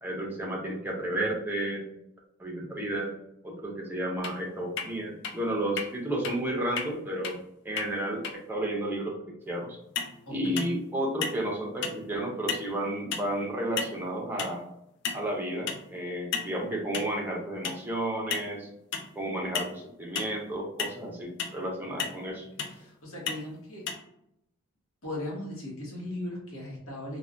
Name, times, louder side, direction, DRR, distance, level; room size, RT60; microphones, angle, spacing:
voice 1, 0.0-1.9 2.4-3.1 3.4-7.4 7.6-9.8 10.3-14.6 15.1-18.7 19.2-22.5, right 1 dB, 10° right, -2 dB, 0.5 m, -32 dB
sound 1, 4.2-4.3 4.8-4.9 5.2-5.3 5.8-5.9 6.2-6.3 6.8-6.9 7.2-7.3 7.8-7.9 8.2-8.3 9.9-10.1 10.6-10.9 11.2-11.5 11.8-12.0 12.5-12.7 13.1-13.3 13.8-14.0 14.4-14.6 15.0-15.3 15.7-15.8 16.3-16.5 16.9-17.1 17.6-17.8 18.3-18.5 18.9-19.1 19.5-19.7 20.1-20.4 20.8-20.9 21.4-21.6 22.0-22.2 22.6-22.8 23.3-23.4 23.9-24.0, left 6 dB, 55° left, 0.3 m, -33 dB
voice 2, 10.3-10.6 22.7-23.9 25.0-27.2, left 1 dB, 75° left, -3 dB, 1.1 m, -38 dB
3.2 x 2.1 x 2.5 m, 0.78 s
head